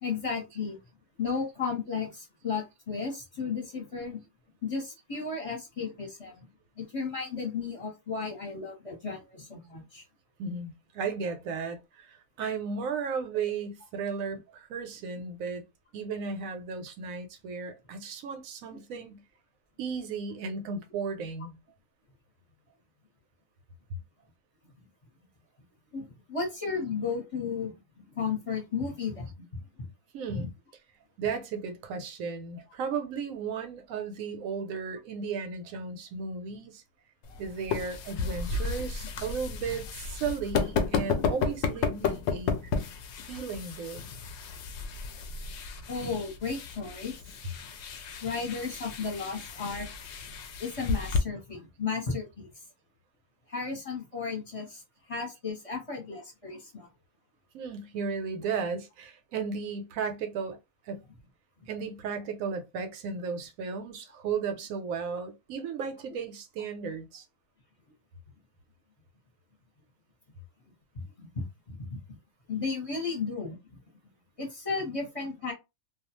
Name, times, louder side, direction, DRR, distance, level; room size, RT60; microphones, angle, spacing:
voice 1, 0.0-0.8 1.2-4.2 4.6-6.5 6.8-10.0 25.9-27.7 28.1-29.3 30.3-30.5 45.9-47.2 48.2-49.9 50.6-52.5 53.5-54.8 55.1-56.9 70.9-72.0 72.5-73.6 74.4-75.5, left 5 dB, 30° left, 0.9 m, -34 dB
voice 2, 10.4-15.6 15.9-19.2 19.8-21.6 30.1-30.5 31.2-36.8 37.4-42.7 43.3-44.0 57.5-60.6 60.8-61.0 61.7-67.2, right 5 dB, 75° right, 1.0 m, -35 dB
sound 1, 37.2-51.2, left 5 dB, 65° left, 0.7 m, -33 dB
2.3 x 2.3 x 2.9 m
omnidirectional pair, 1.5 m